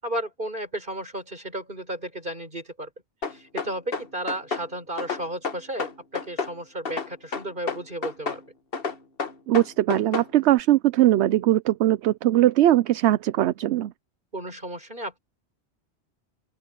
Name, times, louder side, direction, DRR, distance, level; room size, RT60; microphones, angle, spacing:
voice 1, 0.0-2.9 3.3-8.4 14.3-15.2, right 1 dB, 45° right, 6.1 m, -33 dB
sound 1, 3.2-4.7 5.0-6.6 6.9-8.4 8.7-10.3, left 4 dB, 55° left, 1.6 m, -30 dB
voice 2, 9.5-13.9, right 14 dB, 75° right, 0.9 m, -20 dB
open air
omnidirectional pair, 1.2 m